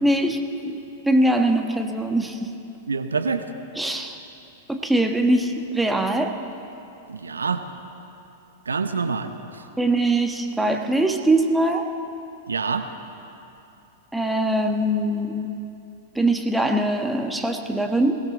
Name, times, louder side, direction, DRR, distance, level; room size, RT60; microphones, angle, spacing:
voice 1, 0.0-2.5 3.8-4.2 4.7-6.3 9.8-11.9 14.1-15.6 16.1-18.2, right 1 dB, 5° right, 4 dB, 1.2 m, -22 dB
voice 2, 2.9-3.4 7.1-7.6 8.7-9.6 12.5-12.8, right 5 dB, 80° right, 8 dB, 0.8 m, -26 dB
21.5 x 17.5 x 3.8 m, 2.8 s
figure-of-eight pair, 100°, 0 cm